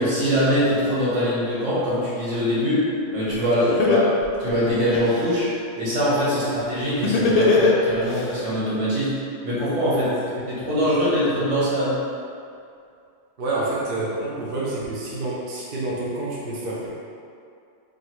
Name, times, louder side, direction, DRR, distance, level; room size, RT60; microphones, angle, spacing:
voice 1, 0.0-2.8 3.1-4.0 4.4-9.1 9.4-10.1 10.5-12.0 14.2-14.4, equal, 80° right, -10 dB, 1.6 m, -23 dB
Laughter, 3.3-3.4 3.8-5.3 7.0-8.2, left 4 dB, 55° left, 0.4 m, -19 dB
voice 2, 10.0-10.3 11.0-11.1 13.4-16.9, right 2 dB, 55° right, -6 dB, 0.8 m, -29 dB
5.0 x 2.6 x 3.1 m, 2.4 s
omnidirectional pair, 1.2 m